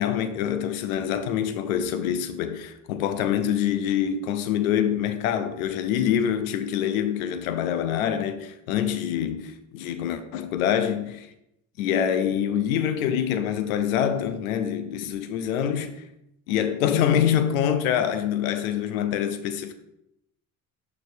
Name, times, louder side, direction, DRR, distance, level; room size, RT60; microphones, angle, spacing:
voice 1, 0.0-11.3 11.8-16.0 16.5-19.7, left 9 dB, 90° left, 0.6 m, -25 dB
6.5 x 6.4 x 2.7 m
hypercardioid pair, 70°, 41 cm